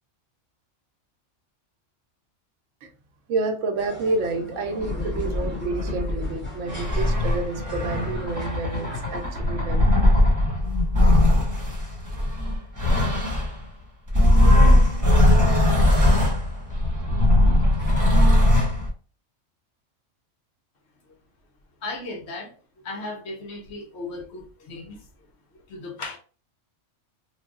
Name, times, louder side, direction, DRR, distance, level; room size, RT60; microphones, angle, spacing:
voice 1, 3.3-9.9, right 3 dB, 80° right, 1.0 m, -29 dB
sound 1, 3.8-9.4, left 1 dB, 10° left, 1.5 m, -41 dB
sound 2, 4.8-13.6 14.1-18.9, left 1 dB, 15° right, 1.1 m, -20 dB
voice 2, 21.8-22.6 22.8-25.1 25.7-26.2, left 2 dB, 65° left, 1.0 m, -36 dB
3.2 x 2.2 x 3.6 m
omnidirectional pair, 1.3 m